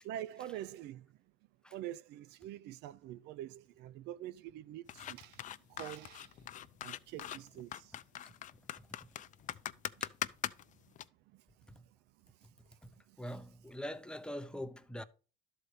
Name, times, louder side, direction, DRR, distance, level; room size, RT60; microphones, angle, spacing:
voice 1, 0.0-1.1 1.7-5.4 5.7-6.3 6.8-7.9 11.3-11.4 13.1-13.2, right 12 dB, 85° right, 0.4 m, -45 dB
sound 1, 4.9-11.0, left 11 dB, 50° left, 0.5 m, -42 dB
voice 2, 13.2-15.0, equal, 5° left, 0.7 m, -43 dB
12.0 x 4.1 x 4.9 m
cardioid pair, 110°, 17 cm